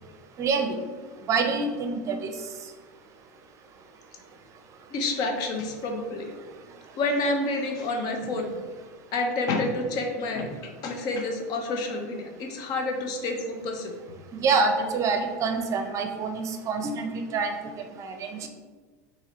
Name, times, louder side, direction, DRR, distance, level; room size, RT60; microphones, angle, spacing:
voice 1, 0.4-0.8 1.3-2.3 14.4-17.5 18.0-18.5, right 4 dB, 40° right, 5 dB, 0.6 m, -26 dB
voice 2, 4.9-6.3 7.0-8.5 9.1-13.9, left 2 dB, 50° left, 3 dB, 0.8 m, -29 dB
5.7 x 2.7 x 3.1 m, 1.4 s
hypercardioid pair, 95°, 8 cm